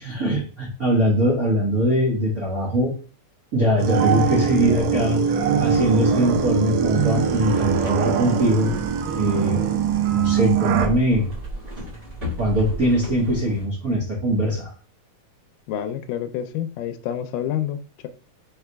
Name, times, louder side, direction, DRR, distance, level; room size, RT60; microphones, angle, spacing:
voice 1, 0.0-2.9 3.5-5.3 5.6-8.7 9.1-9.7 10.1-11.3 12.4-14.7, equal, 75° right, -5 dB, 0.8 m, -22 dB
sound 1, 3.8-10.9, right 7 dB, 90° right, 1.5 m, -22 dB
sound 2, 5.3-13.7, equal, 30° right, 1.0 m, -36 dB
voice 2, 15.7-18.1, left 10 dB, 85° left, 8 dB, 2.1 m, -28 dB
4.8 x 4.6 x 2.2 m, 0.37 s
omnidirectional pair, 3.7 m